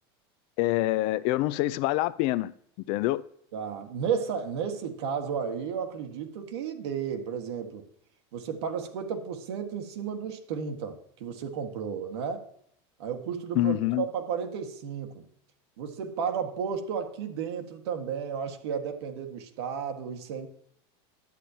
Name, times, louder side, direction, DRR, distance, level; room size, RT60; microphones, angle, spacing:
voice 1, 0.6-2.5 2.9-3.2 13.6-14.0, left 16 dB, 45° left, 0.4 m, -26 dB
voice 2, 3.5-7.8 8.3-12.4 13.0-15.2 15.8-20.5, right 7 dB, 85° right, 1.7 m, -33 dB
11.5 x 9.3 x 2.8 m
supercardioid pair, 165°, 13 cm